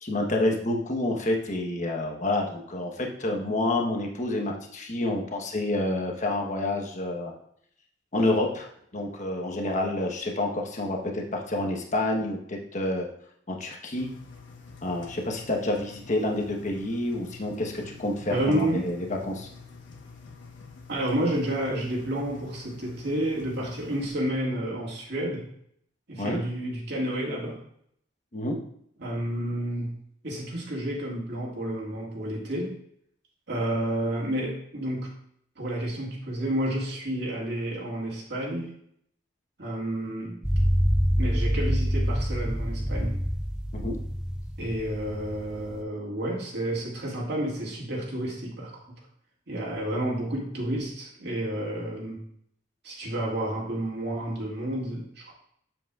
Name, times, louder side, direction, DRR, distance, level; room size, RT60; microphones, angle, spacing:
voice 1, 0.0-7.3 8.1-13.1 13.5-14.1 14.8-19.5 26.2-26.4 28.3-28.6 43.7-44.0, left 1 dB, 40° left, 2 dB, 1.1 m, -28 dB
Engine, 14.0-24.1, left 4 dB, 75° left, 1.2 m, -47 dB
voice 2, 18.3-18.9 20.9-25.5 26.1-27.6 29.0-30.0 30.2-32.8 33.5-35.2 35.6-38.7 39.6-40.4 41.2-43.2 44.6-48.7 49.5-52.2 52.8-55.4, right 1 dB, 65° right, -3 dB, 2.0 m, -30 dB
sound 1, 40.4-45.8, equal, 5° right, 0.5 m, -26 dB
7.8 x 7.7 x 2.4 m, 0.68 s
head